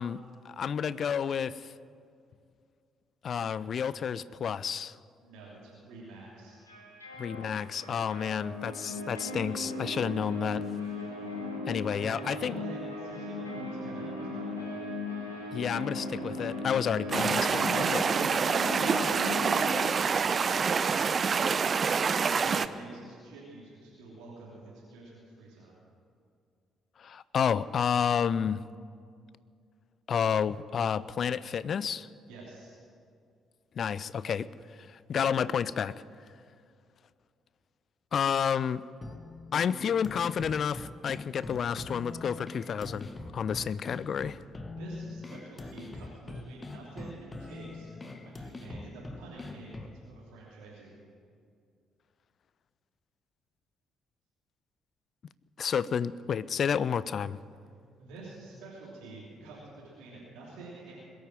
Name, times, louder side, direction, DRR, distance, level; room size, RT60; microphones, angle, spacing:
voice 1, 0.0-1.7 3.2-5.0 7.2-10.7 11.7-12.6 15.5-18.0 27.0-28.6 30.1-32.1 33.8-34.5 34.9-36.0 38.1-38.8 39.5-44.4 55.6-57.4, left 7 dB, 45° left, 18 dB, 0.4 m, -30 dB
voice 2, 5.2-6.6 11.9-14.8 18.0-18.2 18.7-20.9 21.3-24.6 24.9-25.8 32.3-32.8 44.7-50.9 58.0-60.9, right 2 dB, 65° right, -6 dB, 3.2 m, -47 dB
melody of mine, 6.7-19.8, left 2 dB, 85° left, 2.0 m, -37 dB
sound 1, 17.1-22.7, right 5 dB, 40° right, 0.5 m, -27 dB
sound 2, 39.0-50.0, left 2 dB, 25° left, 1.1 m, -43 dB
21.5 x 8.9 x 7.6 m, 2.3 s
figure-of-eight pair, 45°, 0 cm